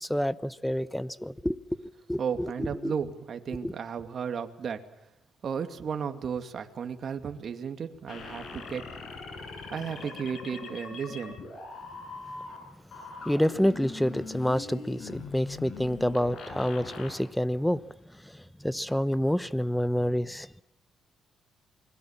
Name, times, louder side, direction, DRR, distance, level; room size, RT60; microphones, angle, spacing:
voice 1, 0.0-2.9 3.6-3.7 13.3-17.8 18.6-20.5, equal, 5° left, 1.0 m, -28 dB
voice 2, 2.2-4.8 5.4-8.8 9.7-11.4, right 7 dB, 55° right, 2.5 m, -34 dB
sound 1, 8.1-12.6 12.9-17.1, left 4 dB, 65° left, 6.7 m, -42 dB
28.5 x 21.5 x 7.4 m
cardioid pair, 90°, 0 cm